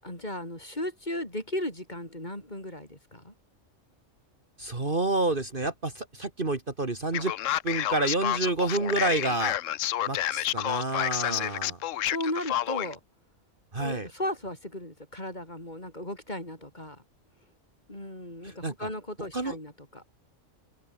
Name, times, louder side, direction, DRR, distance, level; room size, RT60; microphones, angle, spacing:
voice 1, 0.0-3.3 11.3-11.7 12.1-13.0 13.8-17.0 17.9-20.0, left 1 dB, 30° left, 6.2 m, -36 dB
voice 2, 4.6-7.3 7.6-9.5 10.1-11.8 13.7-14.1 18.4-18.7 19.3-19.6, right 2 dB, 40° right, 2.4 m, -29 dB
Male speech man speaking, 7.1-12.9, left 12 dB, 70° left, 1.0 m, -29 dB
open air
omnidirectional pair, 1.4 m